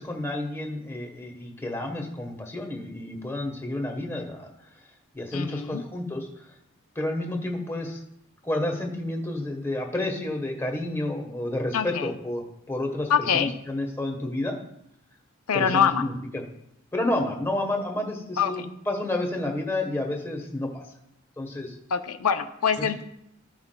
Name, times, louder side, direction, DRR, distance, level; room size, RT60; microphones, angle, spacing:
voice 1, 0.0-4.5 5.1-6.5 6.9-8.0 8.4-14.6 15.5-16.4 16.9-20.8 21.4-21.7 22.8-23.1, left 1 dB, 10° left, 2 dB, 1.1 m, -30 dB
voice 2, 5.3-5.8 11.7-12.1 13.1-13.5 15.5-16.0 18.4-18.7 21.9-23.1, left 7 dB, 85° left, 9 dB, 0.5 m, -24 dB
14.0 x 5.9 x 2.2 m, 0.79 s
head